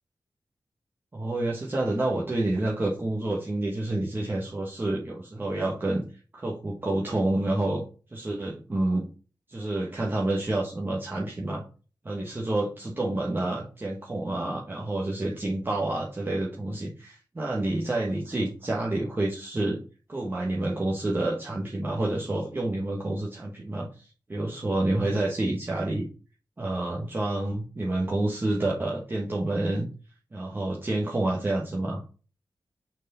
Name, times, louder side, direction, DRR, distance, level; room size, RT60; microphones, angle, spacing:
voice 1, 1.1-6.0 6.3-7.8 8.1-9.1 9.5-11.6 12.0-19.8 20.1-26.1 26.6-29.9 30.3-32.0, right 2 dB, 30° right, -3 dB, 1.4 m, -28 dB
6.2 x 4.5 x 4.3 m, 0.35 s
wide cardioid pair, 105°, 7 cm